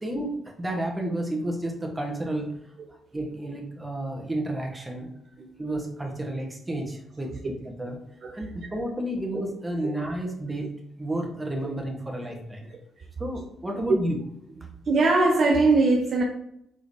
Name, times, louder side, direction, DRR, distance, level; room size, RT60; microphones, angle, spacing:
voice 1, 0.0-2.5 3.1-5.1 5.6-8.0 8.3-10.7 11.0-12.7 13.2-14.2, right 1 dB, 20° right, 1 dB, 1.3 m, -31 dB
voice 2, 14.9-16.2, right 3 dB, 50° right, 0 dB, 0.6 m, -21 dB
4.9 x 3.7 x 2.7 m, 0.73 s
hypercardioid pair, 45°, 0 cm